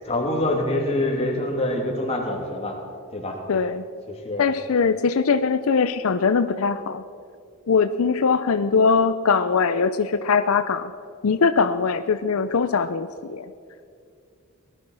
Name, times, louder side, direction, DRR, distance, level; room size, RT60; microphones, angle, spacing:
voice 1, 0.0-2.8 3.1-3.4 4.1-4.5, left 1 dB, 30° left, 0 dB, 2.5 m, -25 dB
voice 2, 3.5-3.8 4.4-7.0 7.7-10.9 11.2-13.5, left 5 dB, 80° left, 11 dB, 0.5 m, -21 dB
17.5 x 12.0 x 6.3 m, 2.3 s
head